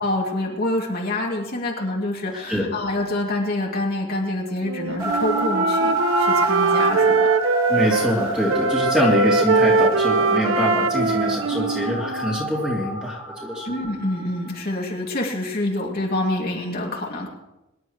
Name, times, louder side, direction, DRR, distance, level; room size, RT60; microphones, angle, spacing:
voice 1, 0.0-7.3 13.6-17.3, left 1 dB, 50° left, -2 dB, 2.5 m, -26 dB
Wind instrument woodwind instrument, 4.6-8.2 8.5-12.5, right 3 dB, 70° right, 0.6 m, -22 dB
sound 1, 5.0-14.5, right 2 dB, 25° right, 4.6 m, -27 dB
voice 2, 7.7-13.7, equal, 5° right, -4 dB, 3.0 m, -24 dB
24.0 x 11.0 x 3.2 m, 0.95 s
head